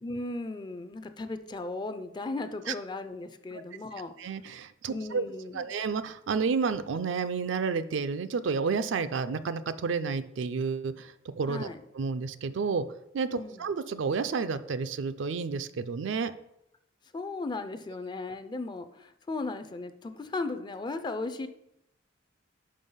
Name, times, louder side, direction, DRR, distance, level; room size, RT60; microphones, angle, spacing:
voice 1, 0.0-4.1 4.9-5.7 11.5-11.8 13.3-13.6 17.1-21.5, left 3 dB, 20° left, 9 dB, 0.4 m, -36 dB
voice 2, 4.2-5.3 5.5-11.7 11.9-12.9 13.1-16.3, right 5 dB, 65° right, 12 dB, 0.4 m, -30 dB
5.4 x 5.1 x 5.5 m, 0.80 s
head